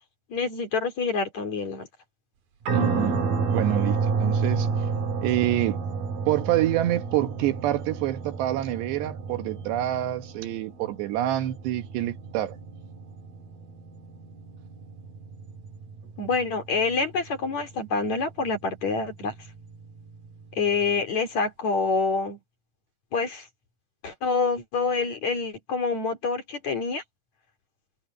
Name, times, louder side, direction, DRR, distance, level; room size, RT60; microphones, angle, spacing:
voice 1, 0.3-1.9 16.2-19.3 20.5-22.4 23.1-23.5 24.0-27.0, left 4 dB, 40° left, 4.2 m, -27 dB
sound 1, 2.7-20.9, right 4 dB, 55° right, 4.0 m, -31 dB
voice 2, 2.7-3.2 3.5-4.7 5.2-5.8 6.3-12.6, right 13 dB, 75° right, 3.2 m, -27 dB
omnidirectional pair, 5.2 m